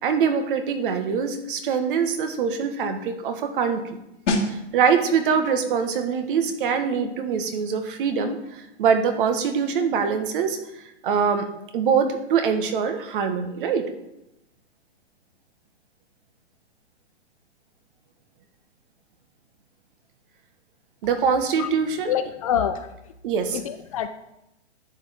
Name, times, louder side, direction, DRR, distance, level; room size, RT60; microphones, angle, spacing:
voice 1, 0.0-4.0 4.5-10.6 11.0-11.5 11.7-13.9 21.0-22.1 23.2-23.6, right 6 dB, 50° right, 8 dB, 1.4 m, -23 dB
sound 1, 4.3-14.8 15.0-15.3, left 2 dB, 85° left, 2.3 m, -36 dB
voice 2, 22.1-23.1 23.5-24.1, left 9 dB, 30° left, 9 dB, 0.4 m, -26 dB
11.0 x 7.4 x 3.5 m, 0.88 s
hypercardioid pair, 140°, 35 cm